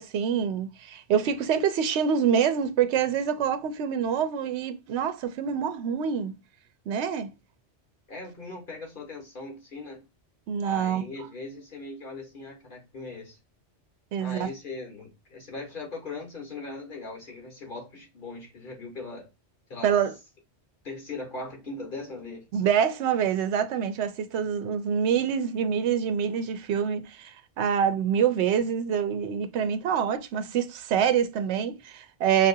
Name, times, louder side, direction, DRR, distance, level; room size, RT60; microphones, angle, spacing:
voice 1, 0.0-6.4 6.9-7.3 10.5-11.0 14.1-14.5 19.8-20.1 22.5-32.5, right 8 dB, 80° right, 0.9 m, -26 dB
voice 2, 8.1-10.1 10.6-13.4 14.2-19.3 19.7-20.0 20.8-22.5, left 3 dB, 50° left, 1.5 m, -39 dB
5.7 x 2.5 x 2.6 m
omnidirectional pair, 1.1 m